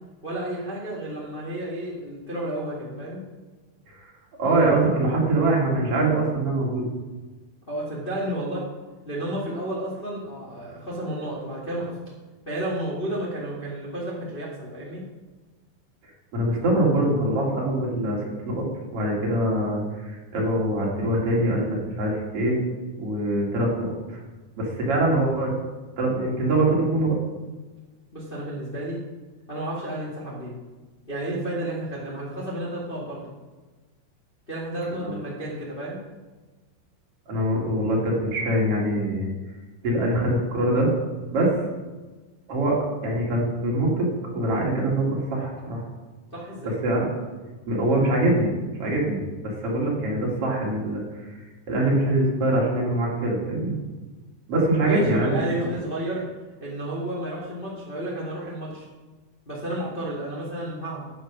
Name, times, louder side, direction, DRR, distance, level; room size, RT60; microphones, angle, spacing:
voice 1, 0.2-3.2 7.7-8.6 9.0-11.9 12.4-15.0 28.1-29.0 29.5-30.5 31.1-33.2 34.5-36.0 46.3-46.9 54.7-56.2 56.6-58.9 59.4-61.0, right 1 dB, 65° left, -5 dB, 0.5 m, -31 dB
voice 2, 4.4-6.9 16.3-18.2 18.4-18.6 18.9-22.6 22.9-23.9 24.6-25.5 26.0-27.2 35.0-35.1 37.3-39.3 39.8-40.9 41.3-41.5 42.5-44.1 44.3-45.8 46.8-47.1 47.7-48.5 48.8-51.0 51.7-53.7 54.5-55.3 55.6-55.7, right 1 dB, 40° right, -3 dB, 2.8 m, -23 dB
9.8 x 7.8 x 6.2 m, 1.2 s
omnidirectional pair, 5.2 m